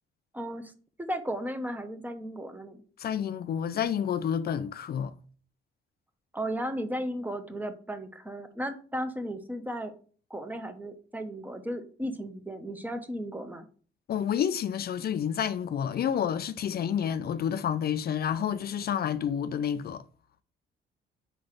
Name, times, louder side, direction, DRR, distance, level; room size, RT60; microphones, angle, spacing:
voice 1, 0.3-0.7 1.1-2.8 6.3-9.9 10.3-13.7, equal, 10° right, 0.8 m, -35 dB
voice 2, 3.0-5.1 14.1-20.0, left 8 dB, 50° left, 0.4 m, -29 dB
4.8 x 4.0 x 5.0 m
cardioid pair, 90°, 20 cm